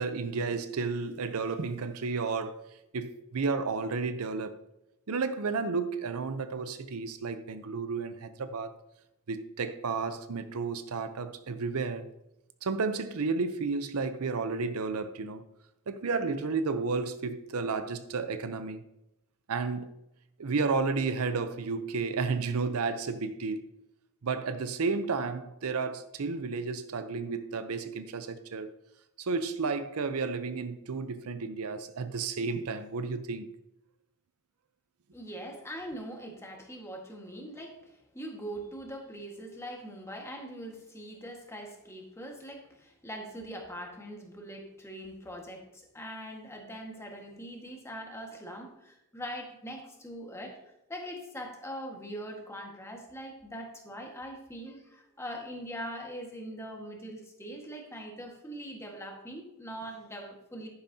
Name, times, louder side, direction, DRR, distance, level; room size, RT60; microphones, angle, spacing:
voice 1, 0.0-2.6 2.9-4.5 5.1-8.7 9.3-12.1 12.6-15.4 15.9-18.8 19.5-19.9 20.4-23.7 24.2-28.7 29.2-33.5, right 4 dB, 75° right, 0.6 m, -32 dB
voice 2, 35.1-37.8 38.1-50.6 50.9-60.7, equal, 10° left, 1.5 m, -42 dB
10.5 x 9.7 x 2.8 m
head